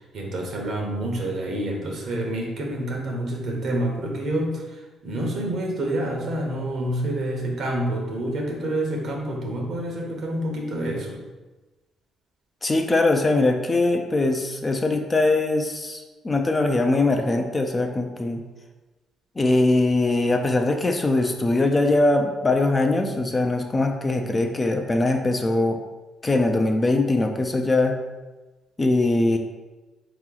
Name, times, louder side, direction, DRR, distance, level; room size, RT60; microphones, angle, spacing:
voice 1, 0.1-4.6 5.0-11.2, right 1 dB, 65° right, 0 dB, 1.0 m, -28 dB
voice 2, 12.6-18.4 19.4-25.8 26.2-28.0 28.8-29.4, left 2 dB, 25° left, 4 dB, 0.5 m, -21 dB
3.9 x 3.0 x 3.8 m, 1.2 s
cardioid pair, 90°, 0 cm